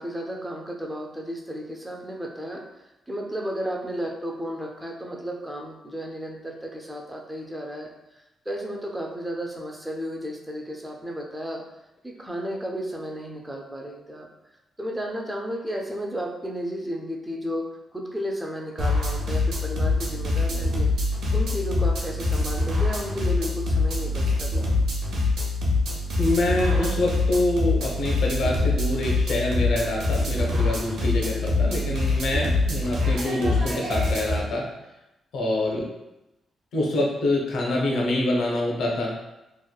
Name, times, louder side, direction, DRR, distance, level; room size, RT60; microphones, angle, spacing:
voice 1, 0.0-2.6 3.1-11.6 12.0-14.3 14.8-17.7 17.9-20.9 21.3-24.7 31.0-31.5, equal, 10° right, 1 dB, 0.3 m, -33 dB
sound 1, 18.8-34.4, left 2 dB, 70° right, 0.6 m, -24 dB
voice 2, 26.2-34.7 35.3-35.9 36.7-39.1, left 1 dB, 70° left, -1 dB, 0.6 m, -26 dB
2.9 x 2.1 x 2.2 m, 0.93 s
wide cardioid pair, 165°, 0 cm